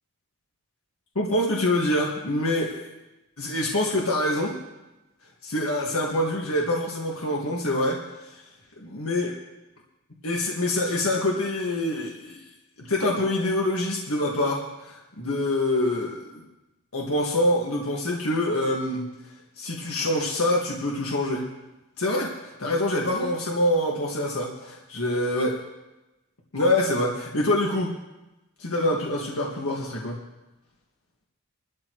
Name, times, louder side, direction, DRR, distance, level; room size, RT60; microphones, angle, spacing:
voice 1, 1.2-2.9 3.4-4.6 5.4-8.4 8.8-9.4 10.2-12.4 12.8-16.4 16.9-19.1 19.6-21.5 22.0-25.6 26.5-27.9 28.6-30.2, left 1 dB, 65° left, -2 dB, 1.9 m, -25 dB
23.0 x 13.0 x 3.1 m, 1.0 s
head